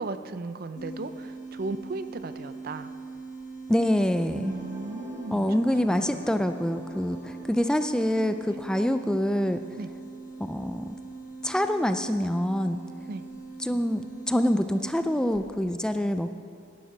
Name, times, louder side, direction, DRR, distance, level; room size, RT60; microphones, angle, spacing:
voice 1, 0.0-2.9 4.3-5.5 5.9-6.2 9.7-9.9 13.1-13.2, right 3 dB, 50° right, 11 dB, 0.5 m, -36 dB
sound 1, 0.8-15.5, right 3 dB, 40° left, 1.6 m, -42 dB
voice 2, 3.7-4.5 5.3-9.6 10.4-10.8 11.4-12.8 13.6-16.3, equal, 5° left, 8 dB, 0.3 m, -26 dB
sound 2, 4.3-10.2, left 1 dB, 15° right, 3.9 m, -48 dB
11.0 x 10.5 x 6.0 m, 2.2 s
head